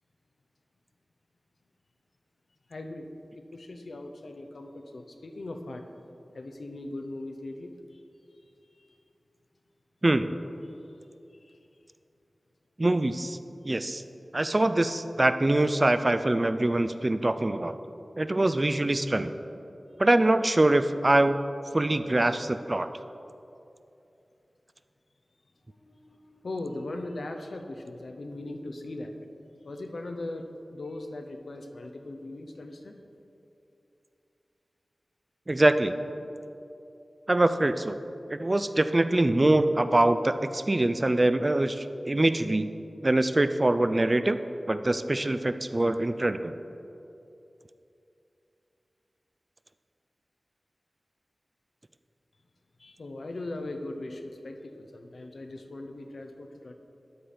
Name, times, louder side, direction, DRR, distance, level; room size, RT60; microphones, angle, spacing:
voice 1, 2.7-3.1 3.3-5.8 6.3-8.0 8.3-8.4 8.8-9.0 11.3-11.6 25.7-29.1 29.6-33.0 52.8-56.7, left 2 dB, 75° left, 4 dB, 0.7 m, -39 dB
voice 2, 12.8-13.4 13.6-14.0 14.3-17.8 18.2-19.3 20.0-21.4 21.7-22.9 35.5-35.9 37.3-38.0 38.3-42.7 43.0-44.4 44.7-46.5, right 1 dB, 30° right, 11 dB, 0.3 m, -24 dB
12.0 x 4.3 x 5.1 m, 2.8 s
wide cardioid pair, 70°, 0 cm